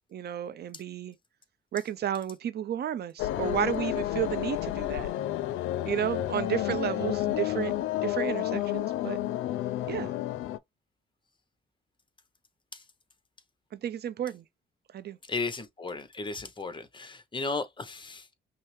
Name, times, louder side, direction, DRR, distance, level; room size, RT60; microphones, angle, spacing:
voice 1, 0.1-1.1 1.7-5.1 5.8-7.8 8.0-9.2 9.9-10.1 13.7-14.4 14.9-15.2, right 10 dB, 55° right, 0.6 m, -32 dB
sound 1, 3.2-10.6, left 13 dB, 85° left, 0.4 m, -30 dB
voice 2, 15.3-18.3, left 3 dB, 25° left, 0.9 m, -35 dB
5.6 x 2.1 x 3.2 m
cardioid pair, 90°, 20 cm